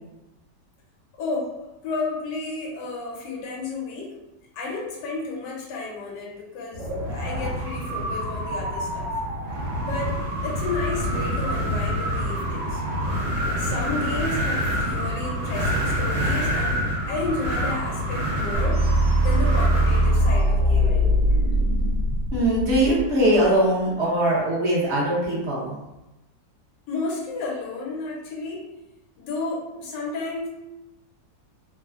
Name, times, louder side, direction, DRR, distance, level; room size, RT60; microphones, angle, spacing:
voice 1, 1.2-1.6 1.8-4.2 4.5-9.1 9.8-12.8 13.6-18.8 19.2-21.1 26.9-28.6 29.2-30.5, left 3 dB, 80° left, -3 dB, 1.3 m, -32 dB
Wind, 6.7-20.4, equal, 85° right, 1.3 m, -27 dB
sound 1, 18.5-23.4, equal, 65° right, 1.3 m, -21 dB
voice 2, 22.3-25.8, right 1 dB, 50° right, -6 dB, 0.9 m, -21 dB
3.2 x 2.0 x 2.4 m, 0.97 s
omnidirectional pair, 1.9 m